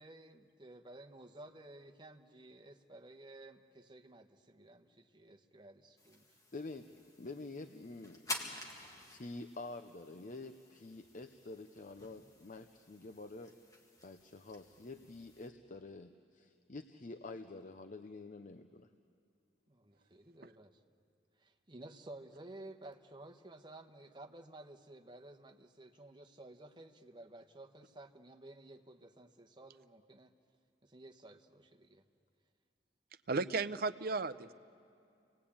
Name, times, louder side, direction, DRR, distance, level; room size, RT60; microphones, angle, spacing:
voice 1, 0.0-6.4 19.7-20.8 21.4-30.3 30.8-32.0, right 2 dB, 25° right, 5 dB, 1.2 m, -54 dB
sound 1, 6.0-15.5, left 1 dB, 20° left, 2.0 m, -50 dB
voice 2, 6.5-8.6 9.1-13.5 14.0-18.9, left 2 dB, 45° left, 8 dB, 0.7 m, -48 dB
voice 3, 33.3-34.5, right 3 dB, 55° right, 13 dB, 0.6 m, -34 dB
29.5 x 20.0 x 8.7 m, 2.5 s
head